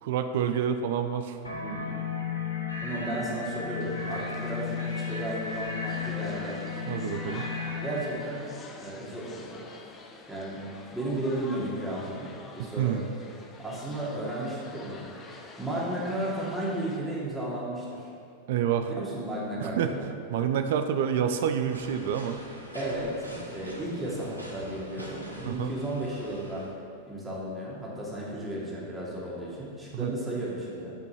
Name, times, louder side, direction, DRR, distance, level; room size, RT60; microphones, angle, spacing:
voice 1, 0.0-1.4 6.9-7.4 12.8-13.1 18.5-18.9 19.6-20.0 20.3-22.4 25.4-25.8 29.9-30.1, right 8 dB, 55° right, 8 dB, 0.5 m, -28 dB
sound 1, 1.4-8.1, left 5 dB, 80° left, 1.4 m, -34 dB
voice 2, 1.5-2.0 2.8-4.7 5.1-6.5 7.8-8.5 8.8-9.7 10.3-10.6 10.9-12.3 12.5-13.0 13.6-15.0 15.3-18.1 18.8-20.0 22.7-26.6 27.0-30.9, right 1 dB, 5° right, -7 dB, 2.5 m, -34 dB
sound 2, 3.8-17.0, left 3 dB, 25° left, 0.8 m, -48 dB
sound 3, 21.6-26.7, equal, 90° right, 1.1 m, -45 dB
8.8 x 5.3 x 6.3 m, 2.4 s
figure-of-eight pair, 90°, 0 cm